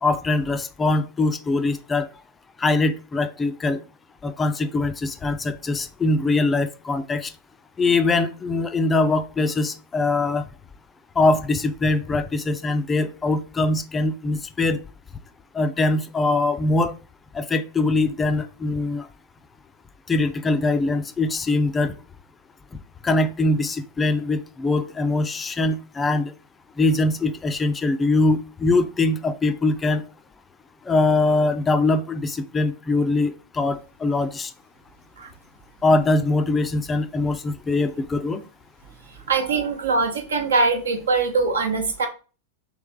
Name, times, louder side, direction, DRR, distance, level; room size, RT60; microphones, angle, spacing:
voice 1, 0.0-2.1 2.6-3.8 4.2-7.3 7.8-10.5 11.2-14.8 15.5-16.9 17.3-19.1 20.1-21.9 23.0-26.3 26.8-30.0 30.9-34.5 35.8-38.4, left 2 dB, 15° left, 10 dB, 0.3 m, -22 dB
voice 2, 39.3-42.1, right 4 dB, 70° right, 4 dB, 0.8 m, -22 dB
3.1 x 3.0 x 3.5 m, 0.35 s
figure-of-eight pair, 90°, 0 cm